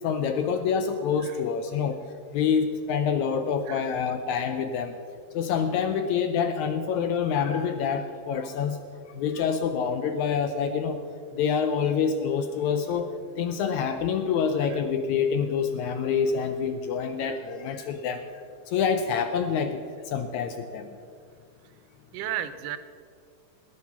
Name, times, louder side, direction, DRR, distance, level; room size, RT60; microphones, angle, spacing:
voice 1, 0.0-2.0 2.3-5.0 5.3-8.8 9.1-11.0 11.3-13.1 13.4-18.3 18.7-21.0, left 6 dB, 75° left, 8 dB, 1.8 m, -26 dB
voice 2, 22.1-22.8, right 11 dB, 80° right, 11 dB, 2.3 m, -33 dB
18.5 x 9.3 x 5.8 m, 2.2 s
omnidirectional pair, 3.8 m